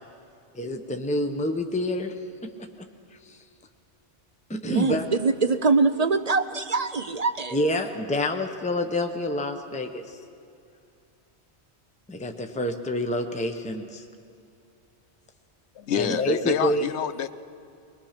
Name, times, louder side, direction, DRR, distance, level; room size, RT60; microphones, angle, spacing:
voice 1, 0.5-2.1 3.2-3.4 4.5-5.0 7.5-10.2 12.1-14.0 15.9-16.9, left 1 dB, 5° left, 5 dB, 0.9 m, -27 dB
voice 2, 4.7-7.6, right 4 dB, 45° right, 10 dB, 0.5 m, -23 dB
voice 3, 15.8-17.3, left 9 dB, 90° left, 12 dB, 1.0 m, -27 dB
21.5 x 21.5 x 5.9 m, 2.6 s
omnidirectional pair, 1.1 m